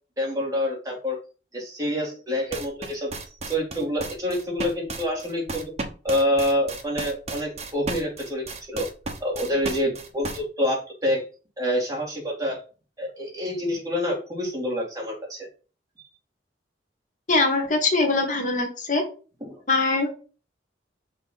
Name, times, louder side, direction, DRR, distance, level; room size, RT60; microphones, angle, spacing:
voice 1, 0.2-1.2 1.5-3.1 3.5-5.7 6.0-8.9 9.2-11.2 11.6-12.6 13.0-15.5 19.5-19.6, left 1 dB, 20° right, -2 dB, 2.1 m, -27 dB
sound 1, 2.5-10.4, right 3 dB, 35° right, 0.9 m, -33 dB
voice 2, 17.3-19.0 19.7-20.1, left 3 dB, 45° left, 3 dB, 1.1 m, -22 dB
6.2 x 3.0 x 5.4 m, 0.36 s
head